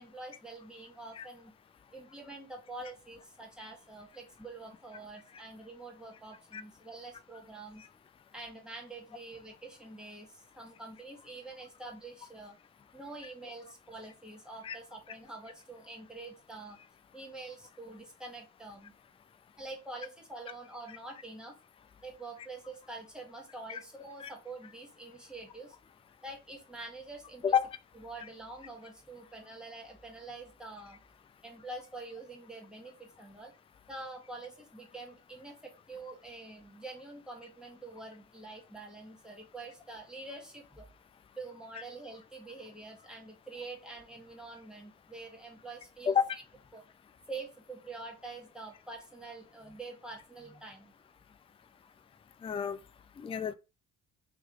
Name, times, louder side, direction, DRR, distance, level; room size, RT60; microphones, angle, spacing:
voice 1, 0.0-1.5 1.9-7.9 8.3-12.6 12.9-16.8 17.1-18.9 19.6-21.6 22.0-25.8 26.2-27.7 27.9-31.0 31.4-33.5 33.9-40.9 41.4-46.4 46.7-46.8 47.3-50.9, right 2 dB, 5° right, 1.4 m, -46 dB
voice 2, 52.4-52.8 53.2-53.5, left 8 dB, 20° left, 0.3 m, -29 dB
3.2 x 3.0 x 3.9 m
cardioid pair, 90°, 30 cm